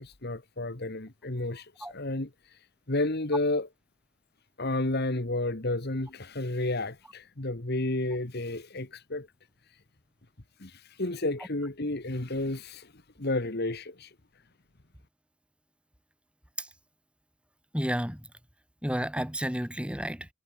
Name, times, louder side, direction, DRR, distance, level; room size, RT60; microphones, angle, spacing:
voice 1, 0.0-2.6 2.9-3.7 4.6-9.3 10.6-14.1, left 2 dB, 50° left, 1.7 m, -31 dB
voice 2, 17.7-18.3 18.8-20.3, equal, 5° right, 3.3 m, -31 dB
head